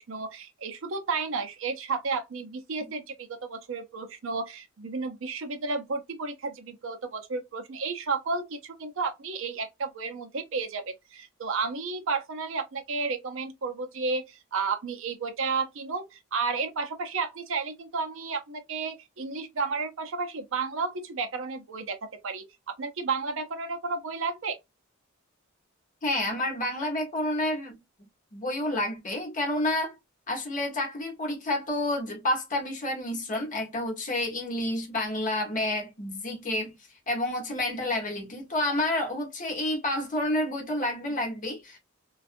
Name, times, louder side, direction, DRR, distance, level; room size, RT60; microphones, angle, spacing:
voice 1, 0.0-22.0 22.2-24.6, right 4 dB, 70° right, 0.6 m, -32 dB
voice 2, 26.0-27.8 28.3-29.9 30.3-36.7 37.1-41.8, left 1 dB, 40° left, 1.0 m, -29 dB
2.5 x 2.3 x 2.5 m
head